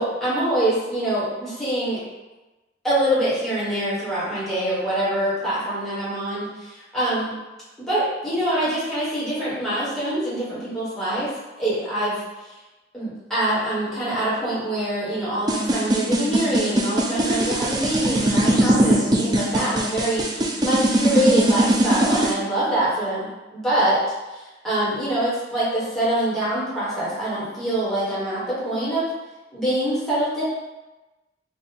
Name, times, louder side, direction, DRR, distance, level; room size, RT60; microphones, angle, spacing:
voice 1, 0.0-2.0 2.8-7.4 7.8-11.3 11.6-12.2 12.9-24.0 24.3-29.1 29.5-30.4, right 1 dB, ahead, -12 dB, 1.4 m, -24 dB
sound 1, 15.5-22.3, right 1 dB, 20° right, 0.4 m, -20 dB
3.7 x 2.4 x 4.1 m, 1.1 s
head